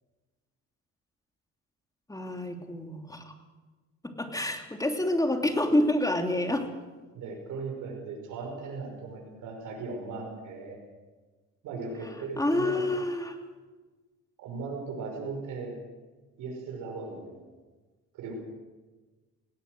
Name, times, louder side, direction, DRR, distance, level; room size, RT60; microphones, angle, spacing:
voice 1, 2.1-3.3 4.0-6.7 12.0-13.4, left 1 dB, 10° left, 4 dB, 3.1 m, -28 dB
voice 2, 7.1-10.8 11.6-12.9 14.4-15.8 16.4-17.4 18.1-18.3, right 4 dB, 90° right, 2 dB, 5.5 m, -38 dB
18.0 x 18.0 x 7.9 m, 1.3 s
cardioid pair, 90°, 30 cm